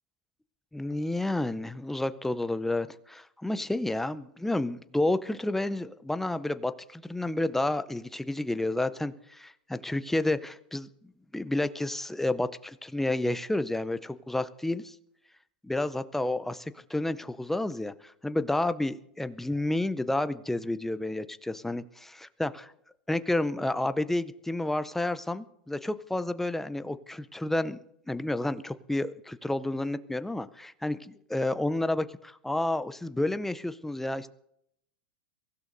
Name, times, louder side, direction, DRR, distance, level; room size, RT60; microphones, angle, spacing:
voice 1, 0.7-10.9 11.3-15.0 15.6-22.7 23.1-34.3, left 1 dB, 5° left, 12 dB, 0.6 m, -30 dB
23.5 x 15.5 x 2.7 m, 0.76 s
hypercardioid pair, 100°, 6 cm